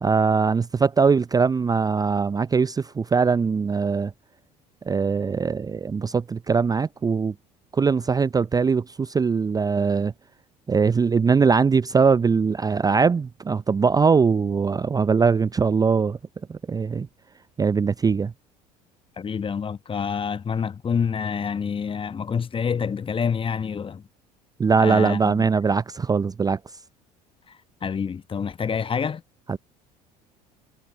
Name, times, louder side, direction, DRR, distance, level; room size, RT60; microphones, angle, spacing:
voice 1, 0.0-4.1 4.9-7.3 7.7-10.1 10.7-16.2 16.5-17.1 17.6-18.3 24.6-26.6 29.5-29.6, right 5 dB, 20° right, 0.6 m, -21 dB
voice 2, 19.2-24.0 24.8-25.4 27.8-29.2, left 6 dB, 25° left, 1.2 m, -27 dB
figure-of-eight pair, 65°, 21 cm